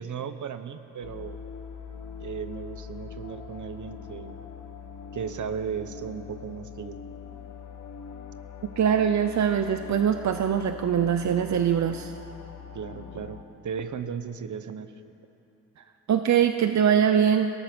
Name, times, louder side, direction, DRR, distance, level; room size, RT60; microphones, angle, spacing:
voice 1, 0.0-1.4 2.2-4.4 5.1-7.0 12.7-14.9, right 7 dB, 85° right, 10 dB, 1.1 m, -36 dB
sound 1, 1.0-13.4, left 6 dB, 80° left, 1.5 m, -42 dB
voice 2, 8.8-12.1 16.1-17.5, right 8 dB, 70° right, 7 dB, 0.7 m, -22 dB
29.0 x 18.5 x 6.2 m, 2.9 s
wide cardioid pair, 165°, 29 cm